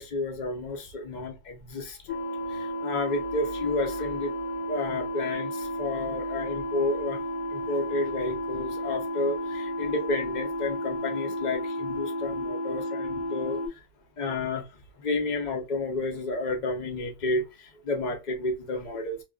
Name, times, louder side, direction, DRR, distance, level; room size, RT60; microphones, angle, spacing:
voice 1, 0.0-2.0 2.5-4.3 4.7-7.2 7.5-13.6 14.2-14.6 15.0-19.2, left 2 dB, 55° left, 0.5 m, -31 dB
sound 1, 2.1-13.7, equal, 85° left, 1.2 m, -32 dB
2.9 x 2.2 x 2.2 m
omnidirectional pair, 1.6 m